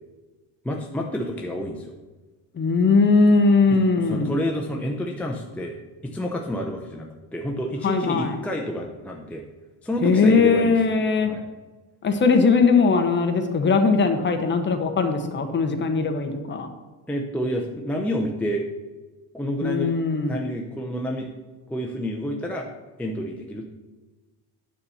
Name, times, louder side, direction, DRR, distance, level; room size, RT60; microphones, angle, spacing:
voice 1, 0.6-1.9 3.7-5.8 6.0-9.4 9.8-10.8 11.2-11.4 17.1-18.7 19.3-19.9 20.3-21.3 21.7-22.7 23.0-23.7, equal, 5° left, 0 dB, 0.5 m, -29 dB
voice 2, 2.5-4.3 7.8-8.4 10.0-11.3 12.0-16.7 19.6-20.4, left 4 dB, 25° left, 5 dB, 0.9 m, -20 dB
9.9 x 4.2 x 6.9 m, 1.2 s
cardioid pair, 155°, 42 cm